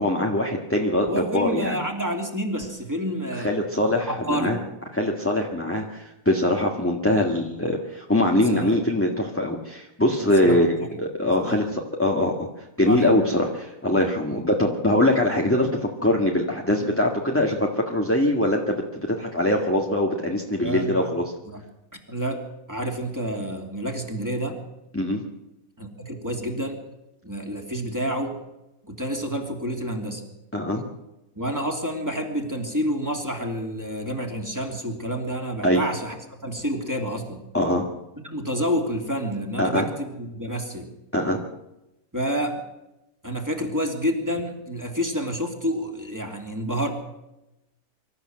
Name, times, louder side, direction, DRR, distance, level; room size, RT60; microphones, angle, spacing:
voice 1, 0.0-1.8 3.4-4.6 4.9-21.3 24.9-25.2 30.5-30.9 35.6-35.8 37.5-37.9 39.6-39.8 41.1-41.4, left 1 dB, 10° left, 0 dB, 1.8 m, -23 dB
voice 2, 1.1-3.5 4.1-4.7 8.5-8.8 10.2-10.7 11.4-11.6 12.8-13.3 14.3-14.4 20.6-21.1 21.5-21.6 22.1-22.4 22.7-24.6 25.8-26.8 27.2-28.4 28.8-30.2 31.4-37.4 38.2-40.9 42.1-42.6 43.2-46.9, equal, 10° right, 2 dB, 3.0 m, -29 dB
25.0 x 13.5 x 7.8 m, 0.94 s
omnidirectional pair, 1.5 m